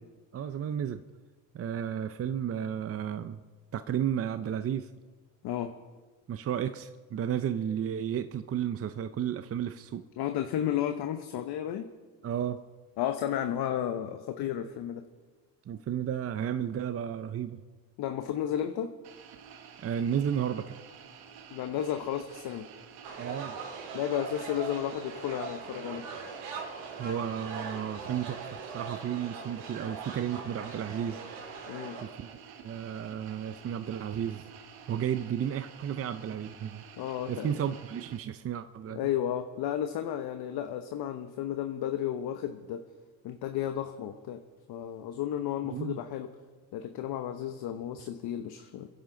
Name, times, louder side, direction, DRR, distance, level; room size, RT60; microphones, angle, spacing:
voice 1, 0.3-1.0 1.5-3.4 3.7-4.9 6.3-10.0 12.2-12.6 15.7-17.6 19.8-20.7 23.2-23.6 27.0-31.2 32.0-32.3 32.6-34.5 34.9-36.8 37.3-39.1 45.7-46.0, right 9 dB, 35° right, 10 dB, 0.6 m, -33 dB
voice 2, 10.2-11.9 13.0-15.0 18.0-18.9 21.5-22.7 23.9-26.1 31.7-32.0 37.0-37.6 38.9-42.8 43.2-44.4 44.7-46.3 46.7-48.9, left 10 dB, 65° left, 7 dB, 1.0 m, -33 dB
sound 1, 19.0-38.2, right 7 dB, 60° right, 1.6 m, -50 dB
sound 2, 23.0-32.0, right 4 dB, 80° right, 4.2 m, -41 dB
28.0 x 11.0 x 3.9 m, 1.4 s
cardioid pair, 95°, 41 cm